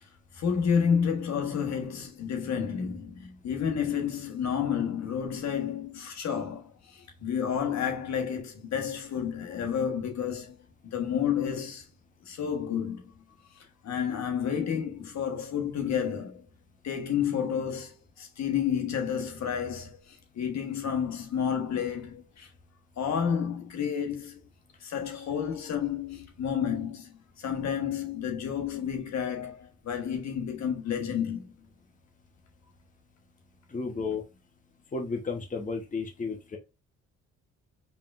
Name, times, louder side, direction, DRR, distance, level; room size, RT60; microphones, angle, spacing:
voice 1, 0.0-11.8 12.2-13.0 13.5-16.5 16.8-22.5 23.0-24.4 24.8-31.5, left 7 dB, 60° left, 1.4 m, -30 dB
voice 2, 33.7-34.2 34.9-36.6, left 4 dB, 25° left, 1.1 m, -33 dB
4.8 x 3.6 x 2.5 m
cardioid pair, 90°, 30 cm